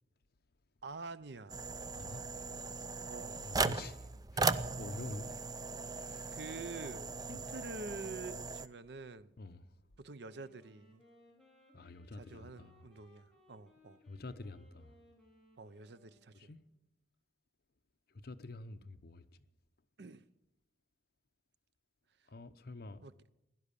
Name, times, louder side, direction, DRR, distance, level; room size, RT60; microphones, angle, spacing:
voice 1, 0.8-1.6 3.1-3.4 6.3-9.3 10.0-11.0 12.1-14.0 15.6-16.5 20.0-20.2 23.0-23.1, right 3 dB, 65° right, 0.6 m, -47 dB
sound 1, 1.5-8.7, right 4 dB, 20° right, 0.5 m, -38 dB
voice 2, 2.0-2.3 3.0-3.1 3.4-5.5 5.8-6.4 7.3-7.4 9.4-9.6 11.7-12.8 14.1-14.9 16.3-16.6 18.2-19.2 22.3-23.0, left 2 dB, 60° left, 0.8 m, -48 dB
Wind instrument woodwind instrument, 10.2-16.6, left 1 dB, 5° left, 4.2 m, -65 dB
16.5 x 11.0 x 6.8 m
head